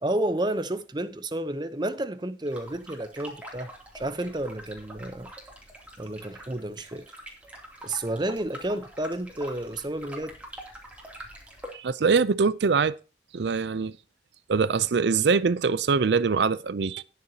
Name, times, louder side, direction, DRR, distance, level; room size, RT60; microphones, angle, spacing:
voice 1, 0.0-5.3 6.0-7.1 7.8-10.4, right 1 dB, 25° right, 0.7 m, -31 dB
sound 1, 2.5-11.7, right 1 dB, 10° right, 2.8 m, -45 dB
voice 2, 11.7-12.9 13.3-13.9 14.5-17.0, right 5 dB, 70° right, 0.5 m, -23 dB
19.5 x 6.8 x 2.8 m
head